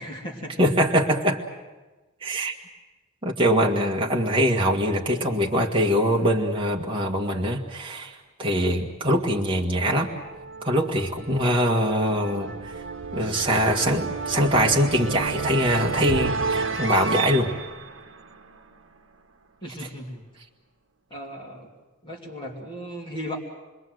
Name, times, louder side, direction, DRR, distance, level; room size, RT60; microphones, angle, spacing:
voice 1, 0.0-0.7 19.6-20.2 21.1-21.7 22.0-23.4, equal, 25° left, -1 dB, 3.0 m, -36 dB
voice 2, 0.6-1.4 2.2-2.6 3.2-10.1 10.6-12.8 13.1-17.5, equal, 25° right, -1 dB, 1.8 m, -23 dB
sound 1, 9.9-19.0, right 4 dB, 70° right, 1.3 m, -31 dB
28.5 x 21.5 x 7.9 m, 1.2 s
head